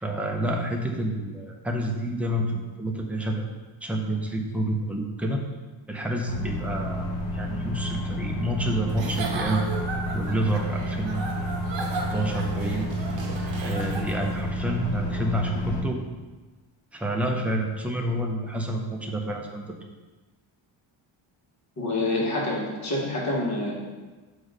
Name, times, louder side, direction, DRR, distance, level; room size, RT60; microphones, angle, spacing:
voice 1, 0.0-3.5 3.8-5.4 5.9-9.6 10.1-11.3 11.9-12.9 13.6-16.0 16.9-19.8, right 1 dB, 5° right, 1 dB, 0.6 m, -29 dB
sound 1, 6.3-15.8, equal, 65° left, 1.0 m, -30 dB
Giggle / Chuckle chortle, 8.9-14.4, right 3 dB, 65° right, 1.0 m, -35 dB
voice 2, 21.8-23.7, left 2 dB, 35° left, -4 dB, 1.8 m, -27 dB
6.2 x 4.8 x 4.1 m, 1.2 s
wide cardioid pair, 135°, 48 cm